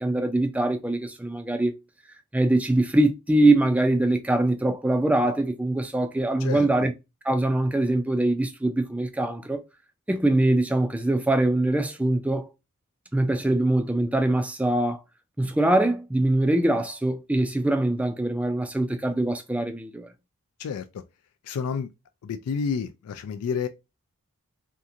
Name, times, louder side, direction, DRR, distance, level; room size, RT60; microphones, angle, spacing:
voice 1, 0.0-1.7 2.3-6.9 7.3-9.6 10.1-12.5 13.1-15.0 15.4-20.1, right 1 dB, 5° right, 0.3 m, -23 dB
voice 2, 6.4-6.9 20.6-21.0 21.4-21.9 22.2-23.7, left 6 dB, 85° left, 0.3 m, -30 dB
2.8 x 2.4 x 2.4 m
head